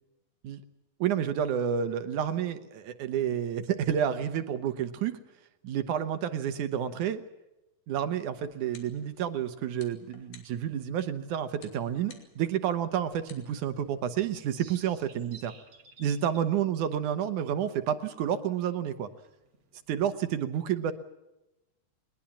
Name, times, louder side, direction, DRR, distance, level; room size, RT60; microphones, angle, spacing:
voice 1, 1.0-5.2 5.6-7.2 7.9-15.5 16.0-19.1 19.9-20.9, right 9 dB, 70° right, 10 dB, 2.4 m, -30 dB
sound 1, 8.4-14.9, left 6 dB, 80° left, 4.3 m, -58 dB
sound 2, 14.4-20.2, right 4 dB, 50° right, 3.7 m, -56 dB
21.5 x 20.5 x 7.3 m, 0.96 s
omnidirectional pair, 4.0 m